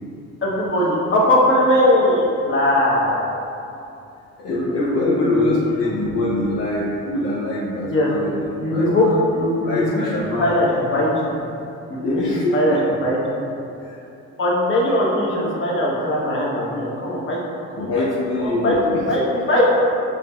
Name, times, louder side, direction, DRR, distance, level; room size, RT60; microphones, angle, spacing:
voice 1, 0.4-3.2 4.5-5.6 7.8-8.1 8.6-11.3 11.9-13.2 14.4-17.4 17.7-18.1 18.4-19.6, left 1 dB, 40° left, -5 dB, 1.0 m, -20 dB
voice 2, 4.4-8.3 8.6-9.2 9.6-10.5 12.0-12.8 13.8-14.0 17.8-19.1, left 2 dB, 60° left, -6 dB, 0.6 m, -24 dB
4.9 x 3.0 x 2.3 m, 2.7 s
cardioid pair, 90°, 30 cm